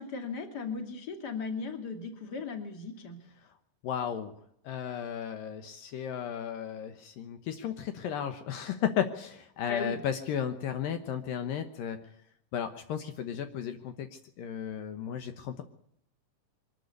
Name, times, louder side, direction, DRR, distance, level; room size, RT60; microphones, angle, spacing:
voice 1, 0.0-3.2 9.7-10.0, left 4 dB, 30° left, 5 dB, 2.8 m, -37 dB
voice 2, 3.8-4.3 4.6-12.0 12.5-14.1 14.4-15.6, left 9 dB, 75° left, 7 dB, 2.8 m, -34 dB
23.5 x 13.0 x 8.4 m, 0.71 s
omnidirectional pair, 4.3 m